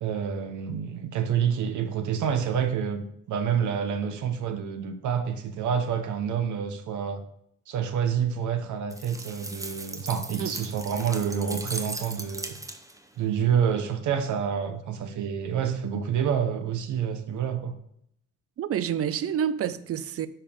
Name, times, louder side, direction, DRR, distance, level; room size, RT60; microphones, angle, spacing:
voice 1, 0.0-7.2 7.7-12.6 13.2-17.7, right 7 dB, 80° right, 1.1 m, -28 dB
sound 1, 8.9-13.1, right 2 dB, 10° right, 0.8 m, -38 dB
voice 2, 18.6-20.3, right 9 dB, 50° right, 0.6 m, -28 dB
5.6 x 5.4 x 6.8 m
cardioid pair, 90°, 30 cm